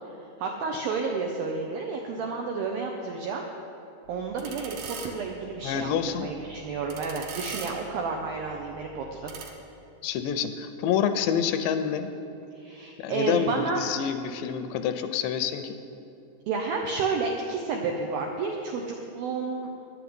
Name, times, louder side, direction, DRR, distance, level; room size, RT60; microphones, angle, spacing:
voice 1, 0.4-3.4 4.1-9.3 12.6-13.8 16.5-19.8, right 4 dB, 90° right, 2 dB, 2.0 m, -31 dB
sound 1, 4.0-9.5, right 6 dB, 70° right, 3.1 m, -43 dB
voice 2, 5.6-6.3 10.0-12.1 13.0-15.8, left 8 dB, 80° left, 8 dB, 2.7 m, -27 dB
11.0 x 8.2 x 8.8 m, 2.9 s
omnidirectional pair, 5.4 m